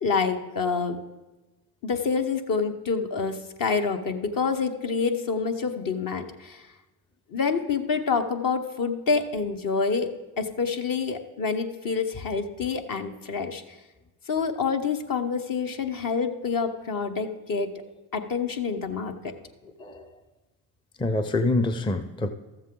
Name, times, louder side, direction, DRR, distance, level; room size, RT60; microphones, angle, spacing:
voice 1, 0.0-1.0 1.8-6.6 7.3-13.6 14.3-17.7 18.1-19.1, left 5 dB, 45° left, 6 dB, 1.1 m, -27 dB
voice 2, 21.0-22.3, left 2 dB, 10° left, 8 dB, 0.6 m, -26 dB
13.5 x 7.3 x 3.8 m, 1.1 s
supercardioid pair, 70°, 45 cm